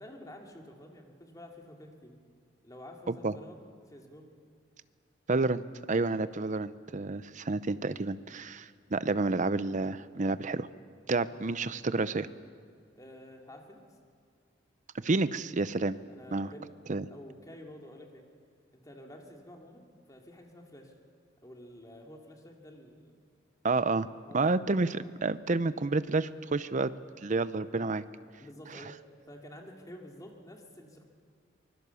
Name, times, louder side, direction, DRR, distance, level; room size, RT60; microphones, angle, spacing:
voice 1, 0.0-2.1 2.6-3.6 3.9-4.3 11.3-11.4 11.8-12.0 12.9-13.8 16.1-18.2 18.7-20.9 21.4-23.2 24.3-24.4 28.4-29.0 29.3-31.0, left 1 dB, 20° left, 1 dB, 2.5 m, -50 dB
voice 2, 5.3-5.6 5.9-10.7 11.1-12.3 14.9-16.0 16.3-16.5 16.9-17.0 23.6-24.1 24.3-26.9 27.2-28.0, right 3 dB, 40° right, 15 dB, 0.7 m, -29 dB
24.5 x 21.0 x 7.0 m, 2.1 s
head